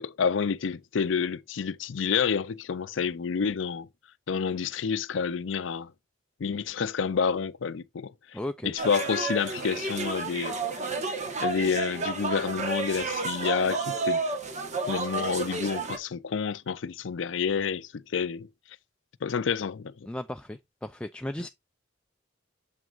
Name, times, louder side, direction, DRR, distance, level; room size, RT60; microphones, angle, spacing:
voice 1, 0.0-3.9 4.3-5.9 6.4-8.1 8.6-10.6 11.4-14.2 14.9-18.5 19.2-20.1, left 6 dB, 70° left, 0.5 m, -29 dB
voice 2, 8.3-8.7 20.1-21.5, left 1 dB, 5° left, 0.3 m, -35 dB
sound 1, 8.8-16.0, right 3 dB, 40° right, 1.2 m, -31 dB
7.2 x 6.0 x 2.4 m
head